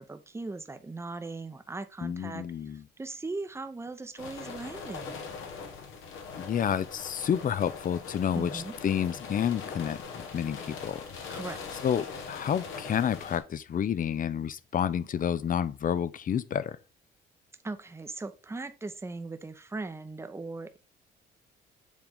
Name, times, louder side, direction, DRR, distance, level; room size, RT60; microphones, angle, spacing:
voice 1, 0.0-5.2 8.3-8.7 11.3-11.6 17.6-20.8, right 3 dB, 15° right, 0.7 m, -39 dB
voice 2, 2.0-2.8 6.3-10.0 10.3-11.0 11.8-16.8, left 8 dB, 45° left, 0.5 m, -29 dB
sound 1, 4.2-13.4, left 5 dB, 85° left, 1.4 m, -41 dB
7.3 x 3.8 x 3.5 m
cardioid pair, 90°, 20 cm